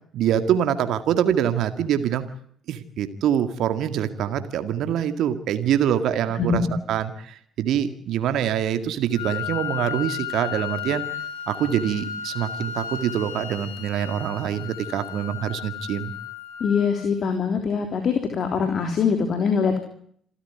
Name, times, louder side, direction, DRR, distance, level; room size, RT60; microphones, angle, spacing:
voice 1, 0.1-2.2 2.7-11.0 11.5-16.1, right 9 dB, 60° right, 10 dB, 2.0 m, -25 dB
Wind instrument woodwind instrument, 9.1-17.1, left 9 dB, 75° left, 2.5 m, -34 dB
voice 2, 16.6-19.8, left 6 dB, 50° left, 6 dB, 3.4 m, -23 dB
27.5 x 14.0 x 9.5 m, 0.64 s
figure-of-eight pair, 50°, 0 cm